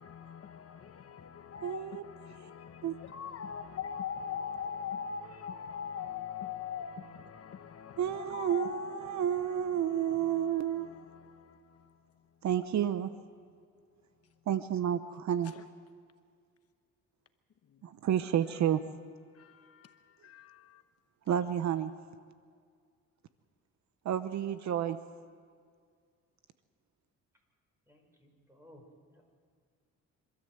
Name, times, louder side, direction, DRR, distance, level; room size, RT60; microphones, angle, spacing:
voice 1, 0.0-11.9 19.3-20.0 20.2-20.8, left 7 dB, 50° left, 1.0 m, -42 dB
voice 2, 1.6-2.0 2.8-3.0 8.0-10.9 12.4-13.1 14.5-15.5 17.8-18.8 21.3-21.9 24.0-25.0, right 10 dB, 65° right, 0.9 m, -30 dB
voice 3, 27.9-28.8 29.1-29.3, left 1 dB, 10° right, 5.4 m, -59 dB
26.0 x 13.5 x 7.9 m
cardioid pair, 90°, 30 cm